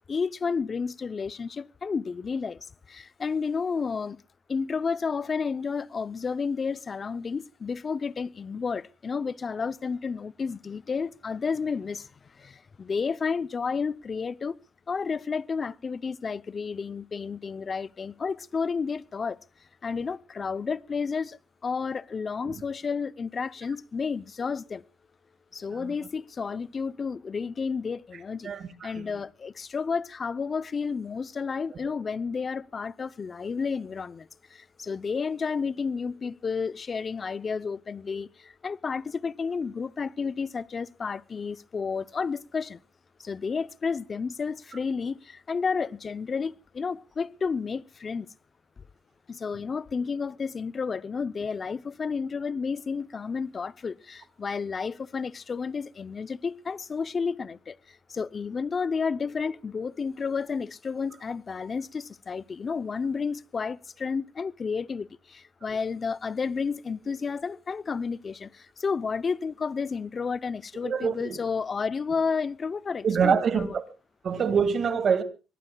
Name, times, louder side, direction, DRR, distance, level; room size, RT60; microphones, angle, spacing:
voice 1, 0.1-4.2 4.5-14.6 14.9-19.4 19.8-24.8 25.5-28.5 28.8-42.8 43.2-48.3 49.3-73.8, left 5 dB, 40° left, 0.6 m, -31 dB
voice 2, 28.4-29.1 70.8-71.4 73.0-73.8 74.2-75.2, right 6 dB, 55° right, 2.1 m, -25 dB
24.0 x 18.5 x 2.3 m
cardioid pair, 90°, 0 cm